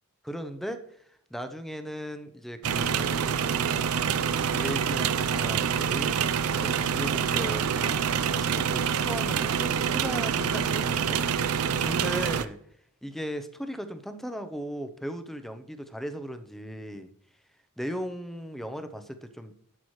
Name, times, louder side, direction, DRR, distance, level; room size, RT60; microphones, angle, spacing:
voice 1, 0.2-0.8 1.3-3.4 4.5-11.2 11.8-12.6 13.0-17.1 17.8-19.5, equal, ahead, 8 dB, 0.7 m, -37 dB
sound 1, 2.6-12.5, right 7 dB, 75° right, 0.5 m, -26 dB
11.5 x 7.9 x 3.2 m, 0.68 s
head